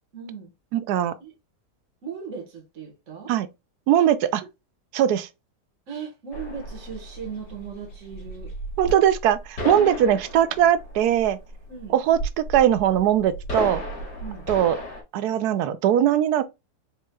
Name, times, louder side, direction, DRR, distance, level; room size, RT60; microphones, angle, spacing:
voice 1, 0.1-0.5 1.2-1.3 2.0-3.3 4.0-4.1 5.9-8.5 9.7-10.2 11.7-11.9 14.2-14.4, right 6 dB, 50° right, 1.7 m, -37 dB
voice 2, 0.7-1.2 3.3-3.5 3.9-4.4 4.9-5.3 8.8-11.4 11.9-13.8 14.5-14.8 15.1-16.4, right 10 dB, 75° right, 1.1 m, -20 dB
sound 1, 6.3-15.0, equal, 85° left, 2.7 m, -34 dB
5.1 x 4.3 x 2.3 m
omnidirectional pair, 1.8 m